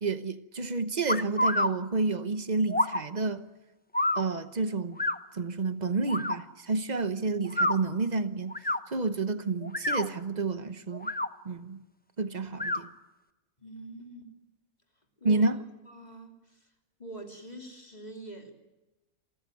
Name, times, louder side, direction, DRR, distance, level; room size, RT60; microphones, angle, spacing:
voice 1, 0.0-3.4 4.2-5.0 5.3-8.5 8.9-11.1 11.4-11.8 12.2-12.9 15.2-15.6, right 3 dB, 35° right, 1.0 m, -30 dB
short whistles, 1.1-1.7 2.7-3.0 3.9-4.2 5.0-5.2 6.1-6.4 7.4-7.8 8.5-8.8 9.6-10.1 10.9-11.3 12.5-12.8, left 1 dB, 10° left, 0.4 m, -27 dB
voice 2, 13.6-14.3 15.2-15.5 15.9-16.7 17.0-18.5, right 2 dB, 30° left, 3.0 m, -45 dB
28.5 x 14.0 x 9.2 m
omnidirectional pair, 1.5 m